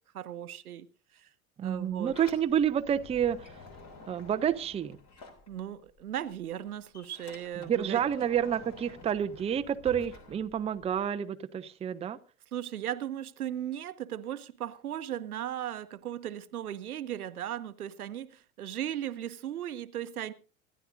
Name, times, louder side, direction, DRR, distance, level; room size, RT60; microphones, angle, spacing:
voice 1, 0.1-0.9 1.1-1.3 1.6-2.1 5.5-8.0 12.5-20.3, right 11 dB, 75° right, 0.9 m, -37 dB
voice 2, 1.6-3.5 4.1-5.0 7.6-12.2, right 9 dB, 15° right, 0.6 m, -29 dB
Sliding door, 1.7-6.0 6.3-11.0, left 3 dB, 35° left, 3.1 m, -50 dB
25.5 x 11.0 x 2.6 m
figure-of-eight pair, 80°, 44 cm